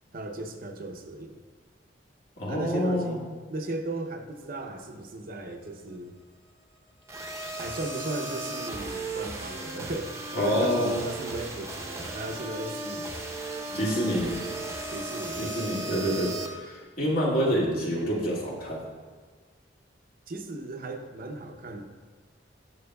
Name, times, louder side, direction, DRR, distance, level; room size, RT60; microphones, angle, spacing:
voice 1, 0.1-1.4 2.5-6.1 7.6-13.1 13.7-14.6 14.9-16.1 20.3-21.8, right 2 dB, 50° right, 4 dB, 0.7 m, -37 dB
voice 2, 2.4-3.2 10.3-11.0 13.7-14.4 15.4-18.8, equal, 55° left, -5 dB, 2.1 m, -27 dB
sound 1, 7.1-16.5, right 2 dB, 15° right, 0.8 m, -36 dB
12.0 x 6.0 x 2.3 m, 1.5 s
head